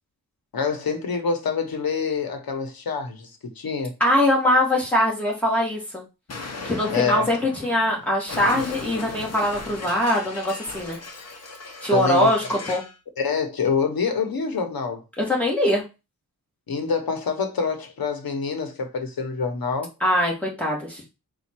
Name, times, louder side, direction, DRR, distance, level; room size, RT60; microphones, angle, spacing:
voice 1, 0.5-3.3 3.6-3.9 6.9-7.3 11.9-12.3 13.2-15.0 16.7-19.9, left 5 dB, 75° left, 1.0 m, -26 dB
voice 2, 4.0-6.0 6.6-11.0 11.8-12.8 15.2-15.9 20.0-21.0, left 1 dB, 5° left, 1.8 m, -22 dB
Explosion, 6.3-13.0, left 3 dB, 45° left, 0.9 m, -37 dB
4.1 x 2.6 x 4.4 m
wide cardioid pair, 125°, 36 cm